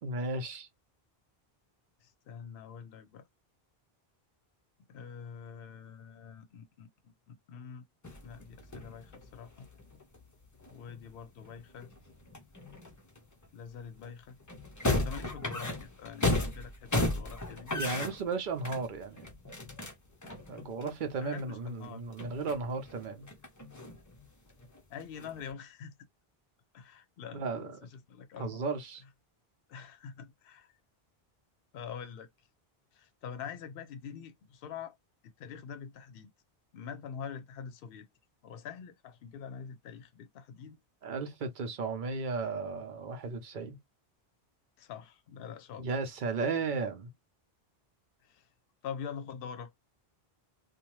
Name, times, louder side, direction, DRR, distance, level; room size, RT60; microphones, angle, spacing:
voice 1, 0.0-0.7 17.7-19.3 20.5-23.3 27.3-27.7 28.4-29.0 41.0-43.8 45.8-47.1, right 4 dB, 55° right, 0.8 m, -35 dB
voice 2, 2.0-3.3 4.9-7.9 8.2-9.7 10.7-11.9 13.5-14.4 14.8-17.7 21.2-22.0 24.9-26.0 26.7-28.6 29.7-30.7 31.7-32.3 32.9-35.0 35.2-36.3 36.7-38.1 38.4-40.8 44.8-45.9 48.2-48.5 48.8-49.7, left 7 dB, 70° left, 0.7 m, -45 dB
sound 1, 8.0-13.5 14.0-14.1 14.4-21.4 21.8-21.9 22.2-24.3 24.6-25.5, left 2 dB, 25° left, 0.4 m, -36 dB
2.7 x 2.2 x 3.0 m
omnidirectional pair, 1.0 m